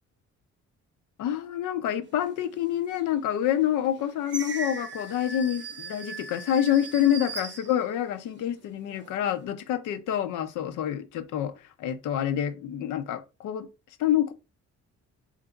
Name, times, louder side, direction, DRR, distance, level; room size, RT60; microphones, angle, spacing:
voice 1, 1.2-11.5 11.8-13.7 14.0-14.3, left 10 dB, 85° left, 0.6 m, -27 dB
sound 1, 2.9-3.0 3.6-8.3 8.8-9.5, right 3 dB, 40° right, 0.6 m, -39 dB
3.3 x 2.6 x 3.8 m
cardioid pair, 90°, 30 cm